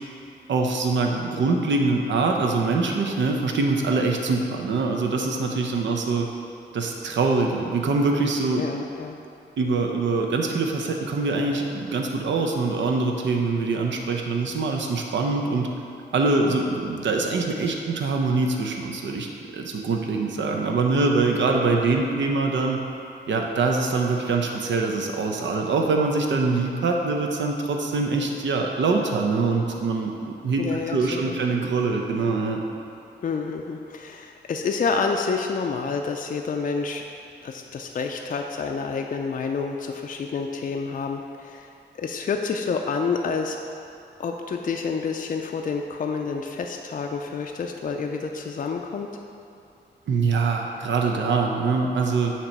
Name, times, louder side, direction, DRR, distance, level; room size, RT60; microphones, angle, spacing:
voice 1, 0.5-6.3 6.7-8.6 9.6-15.7 16.1-19.3 19.5-22.8 23.3-30.6 30.9-32.6 50.1-52.3, right 3 dB, 80° right, 2 dB, 0.7 m, -24 dB
voice 2, 8.6-9.2 30.6-31.4 33.2-37.0 37.4-41.7 42.0-43.6 44.2-49.1, left 5 dB, 45° left, 3 dB, 0.4 m, -28 dB
7.3 x 3.0 x 5.3 m, 2.7 s
cardioid pair, 80°, 19 cm